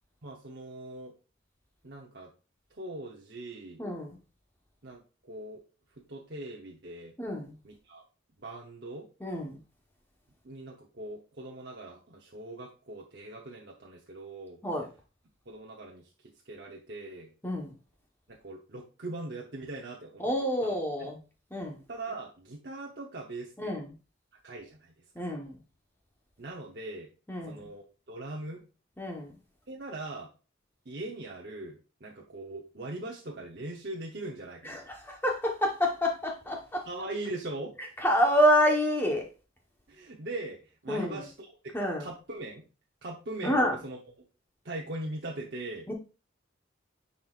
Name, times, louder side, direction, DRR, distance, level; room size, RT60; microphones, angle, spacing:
voice 1, 0.2-1.1 1.8-2.3 2.7-3.8 4.8-5.6 6.1-7.1 7.6-8.0 8.4-9.1 10.4-14.6 15.5-16.1 16.4-17.3 18.3-20.3 20.6-20.7 21.0-21.1 21.9-23.7 24.4-25.3 26.4-27.1 27.4-28.6 29.7-30.3 30.8-34.8 36.9-37.8 39.9-41.7 42.0-42.7 43.0-44.0 44.6-45.9, right 2 dB, 55° right, 0.9 m, -41 dB
voice 2, 3.8-4.2 7.2-7.5 9.2-9.6 14.6-14.9 17.4-17.7 20.2-21.2 21.5-21.8 23.6-23.9 25.1-25.6 27.3-27.7 29.0-29.4 34.6-36.9 38.0-39.3 40.9-41.2 41.7-42.1 43.4-43.8 45.9-46.0, equal, 10° left, 1.1 m, -28 dB
9.3 x 4.3 x 2.5 m
head